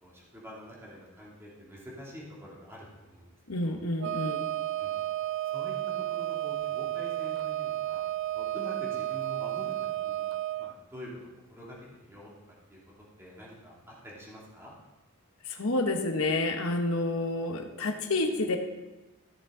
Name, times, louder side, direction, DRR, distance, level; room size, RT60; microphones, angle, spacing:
voice 1, 0.0-3.3 3.6-3.8 4.8-4.9 5.5-5.7 6.1-8.0 8.3-10.2 10.6-11.1 11.5-11.8 12.0-12.3 12.7-12.8 13.2-14.7, equal, 10° right, -6 dB, 2.6 m, -46 dB
voice 2, 3.5-4.5 15.4-18.6, left 2 dB, 70° left, 4 dB, 1.1 m, -29 dB
Wind instrument woodwind instrument, 4.0-10.7, right 13 dB, 60° right, 0.3 m, -32 dB
14.5 x 6.9 x 3.8 m, 1.1 s
head